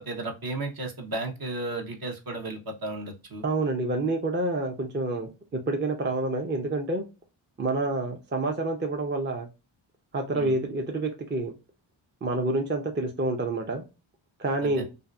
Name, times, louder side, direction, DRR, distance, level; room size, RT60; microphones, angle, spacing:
voice 1, 0.1-3.4 10.3-10.5 14.6-14.8, right 2 dB, 50° right, 3 dB, 0.9 m, -34 dB
voice 2, 3.4-7.0 7.6-9.5 10.1-11.5 12.2-13.8 14.4-14.8, right 2 dB, 25° right, 4 dB, 0.6 m, -28 dB
2.7 x 2.4 x 2.3 m, 0.29 s
cardioid pair, 50°, 48 cm